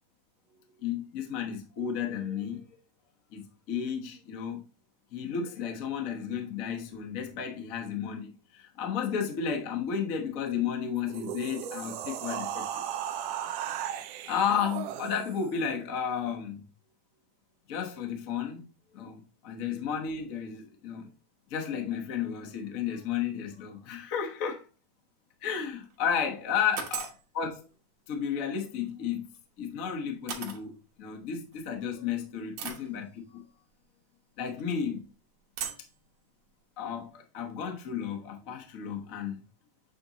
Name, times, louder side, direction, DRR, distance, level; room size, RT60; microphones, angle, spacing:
voice 1, 0.8-2.6 3.3-4.6 5.1-12.8 14.3-16.6 17.7-18.6 18.9-21.1 21.5-24.6 25.4-27.1 27.3-27.6 28.1-29.3 29.6-33.4 34.4-35.0 36.8-39.4, left 7 dB, 80° left, 0.7 m, -33 dB
sound 1, 11.0-15.6, right 10 dB, 90° right, 1.4 m, -36 dB
sound 2, 25.6-26.0 26.8-27.2 29.3-29.4 30.3-30.6 31.5-31.6 32.6-32.9 34.5-34.8 35.6-35.9, right 8 dB, 70° right, 2.3 m, -37 dB
8.6 x 2.9 x 3.9 m
omnidirectional pair, 3.4 m